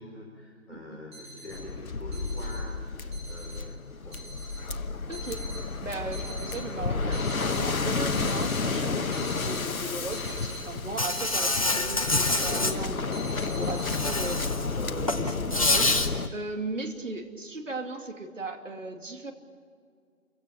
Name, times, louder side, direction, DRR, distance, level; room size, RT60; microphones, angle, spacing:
voice 1, 0.0-4.5, left 1 dB, ahead, -11 dB, 1.3 m, -45 dB
sound 1, 1.1-1.6 2.1-2.6 3.1-3.6 4.1-4.6 5.1-5.6 6.1-6.6 7.1-7.6 8.1-8.6 9.1-9.6 10.1-10.6 11.1-11.6 12.1-12.6 13.1-14.3, right 1 dB, 20° right, 4.8 m, -43 dB
Waves surf, 1.5-16.3, left 4 dB, 75° left, 1.2 m, -31 dB
voice 2, 5.1-5.5 5.8-19.3, right 2 dB, 60° right, 4 dB, 2.9 m, -37 dB
Insect, 11.0-12.7 13.8-14.7 15.0-16.1, left 2 dB, 25° left, 0.9 m, -26 dB
28.0 x 16.5 x 9.1 m, 2.2 s
figure-of-eight pair, 165°, 43 cm